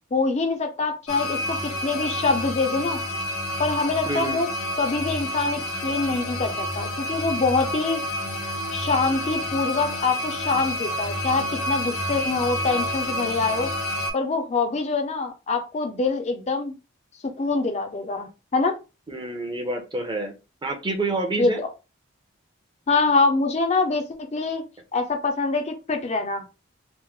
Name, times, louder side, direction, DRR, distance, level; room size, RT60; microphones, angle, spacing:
voice 1, 0.1-1.6 1.8-3.0 3.6-4.5 4.8-8.0 8.7-13.7 14.1-16.7 17.2-18.8 21.4-21.7 22.9-24.6 24.9-26.4, left 3 dB, 30° left, 5 dB, 0.4 m, -24 dB
sound 1, 1.1-14.1, left 1 dB, 85° left, 1.3 m, -29 dB
voice 2, 4.1-4.4 19.1-20.3 20.6-21.6, right 2 dB, 20° right, 4 dB, 0.6 m, -28 dB
3.0 x 2.0 x 3.5 m, 0.29 s
head